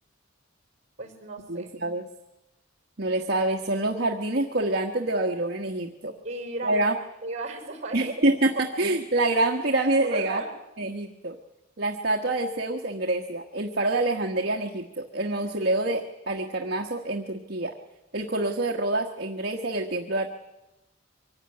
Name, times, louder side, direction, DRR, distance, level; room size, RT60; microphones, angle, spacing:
voice 1, 1.0-1.7 6.2-6.9 7.2-8.7 10.1-10.5, right 2 dB, 35° right, 5 dB, 5.4 m, -35 dB
voice 2, 1.5-2.1 3.0-6.1 6.6-6.9 7.9-10.4 10.8-11.4 11.8-17.7 18.1-20.3, right 2 dB, 50° right, 2 dB, 1.4 m, -26 dB
24.0 x 16.0 x 9.8 m, 1.0 s
head